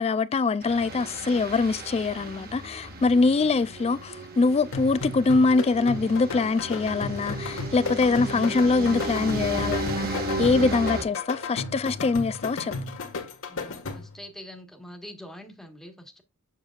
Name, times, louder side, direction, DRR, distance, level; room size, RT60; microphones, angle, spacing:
voice 1, 0.0-12.7, left 4 dB, 30° left, 0.3 m, -23 dB
sound 1, 0.6-11.0, right 2 dB, 45° right, 1.5 m, -34 dB
voice 2, 3.1-3.7 10.9-11.1 13.5-16.2, left 1 dB, ahead, 1.3 m, -45 dB
sound 2, 4.7-14.3, left 3 dB, 65° left, 1.5 m, -34 dB
7.3 x 6.6 x 2.3 m
head